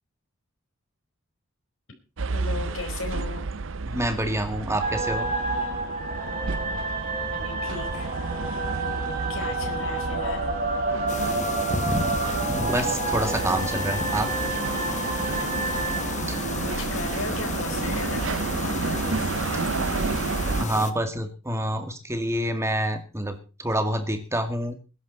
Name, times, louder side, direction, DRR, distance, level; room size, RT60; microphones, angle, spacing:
sound 1, 2.2-20.6, right 4 dB, 65° right, 0.7 m, -31 dB
voice 1, 2.3-3.4 7.3-8.2 9.3-10.5 16.6-19.7 20.1-20.2, left 3 dB, 65° left, 4 dB, 4.5 m, -36 dB
voice 2, 3.9-5.3 12.6-14.3 16.3-16.4 20.6-24.8, right 1 dB, 15° right, 7 dB, 2.1 m, -27 dB
sound 2, 4.8-17.4, right 3 dB, 40° right, 6.3 m, -30 dB
sound 3, 11.1-20.9, left 3 dB, 35° left, 1.3 m, -32 dB
20.5 x 11.0 x 4.1 m, 0.33 s
head